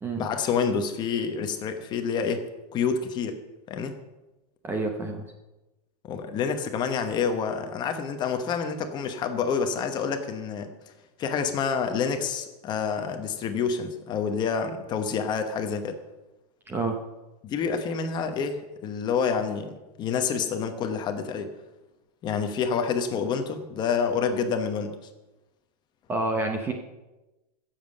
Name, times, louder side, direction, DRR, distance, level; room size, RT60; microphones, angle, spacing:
voice 1, 0.2-2.5 2.7-3.4 3.7-3.9 6.0-10.7 11.2-16.0 17.4-21.5 22.2-25.0, left 6 dB, 20° left, 7 dB, 1.0 m, -28 dB
voice 2, 4.6-5.3 16.7-17.0 26.1-26.7, right 3 dB, 10° right, 4 dB, 0.7 m, -28 dB
15.0 x 7.4 x 6.6 m, 1.1 s
supercardioid pair, 170°, 20 cm